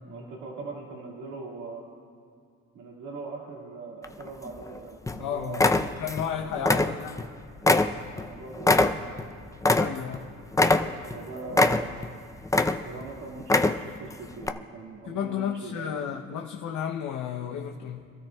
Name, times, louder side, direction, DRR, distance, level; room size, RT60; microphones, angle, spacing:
voice 1, 0.1-1.8 2.7-5.8 6.3-6.9 8.1-9.1 10.8-11.9 12.8-15.9, right 3 dB, 75° right, -4 dB, 2.2 m, -41 dB
sound 1, 4.0-4.7 5.1-5.2 5.5-6.3 6.6-7.3 7.6-10.2 10.5-11.2 11.5-12.1 12.4-13.0 13.4-14.0 14.4-14.5, left 2 dB, 10° left, 0.5 m, -22 dB
voice 2, 5.1-7.3 9.7-10.3 15.0-18.1, left 8 dB, 80° left, 2 dB, 0.8 m, -33 dB
26.5 x 13.0 x 2.3 m, 2.2 s
cardioid pair, 90°, 30 cm